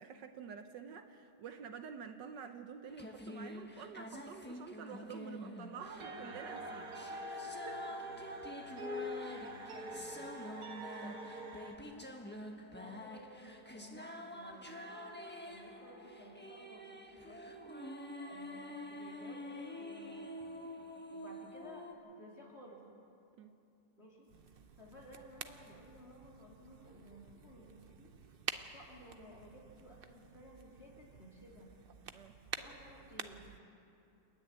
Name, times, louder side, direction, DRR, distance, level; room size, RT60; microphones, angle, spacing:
voice 1, 0.0-7.8 8.8-8.9 11.0-11.2 23.4-23.6 32.1-32.3, right 7 dB, 70° right, 7 dB, 1.5 m, -49 dB
sound 1, 2.9-21.9, left 1 dB, 5° left, 1.1 m, -47 dB
sound 2, 5.8-11.7, equal, 50° right, 1.7 m, -44 dB
voice 2, 7.7-8.6 8.9-9.4 9.7-10.4 11.0-12.1 12.5-14.0 14.3-14.8 15.4-17.9 18.3-20.3 20.7-22.8 24.0-28.4 28.7-31.7 32.6-33.5, equal, 35° left, -3 dB, 3.6 m, -57 dB
sound 3, 24.3-33.6, right 6 dB, 90° right, 0.5 m, -49 dB
29.5 x 10.0 x 9.1 m, 2.7 s
omnidirectional pair, 2.0 m